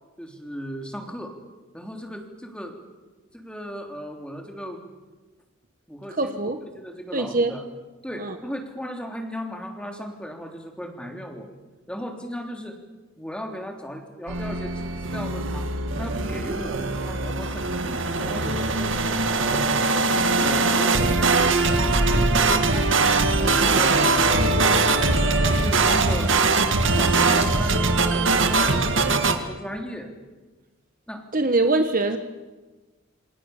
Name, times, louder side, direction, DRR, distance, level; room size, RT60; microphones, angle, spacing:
voice 1, 0.2-1.4 1.7-2.8 3.3-4.8 5.9-6.4 6.7-7.6 8.0-11.5 11.9-12.8 13.2-15.7 16.0-19.1 19.5-20.1 20.4-22.9 23.4-26.3 26.9-28.8 29.4-30.1 31.1-31.3, equal, 5° left, 3 dB, 3.3 m, -36 dB
voice 2, 6.1-6.6 7.1-7.5 8.2-8.4 31.3-32.2, right 2 dB, 40° right, 7 dB, 1.4 m, -23 dB
sound 1, 14.3-29.4, right 3 dB, 60° right, 2.1 m, -21 dB
28.5 x 26.5 x 7.3 m, 1.2 s
head